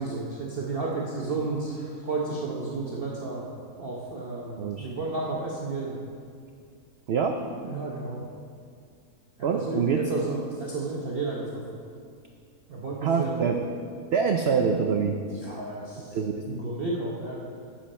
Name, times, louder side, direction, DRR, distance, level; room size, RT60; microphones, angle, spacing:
voice 1, 0.0-3.5 3.8-5.9 7.6-8.2 9.5-11.7 12.7-13.4 15.4-16.1 16.5-17.4, right 3 dB, 45° right, -4 dB, 0.9 m, -32 dB
voice 2, 4.6-4.9 7.1-7.4 9.4-10.1 13.0-13.6 14.1-15.2 16.1-16.4, right 6 dB, 85° right, 4 dB, 0.5 m, -25 dB
10.5 x 7.6 x 4.3 m, 2.3 s
omnidirectional pair, 1.7 m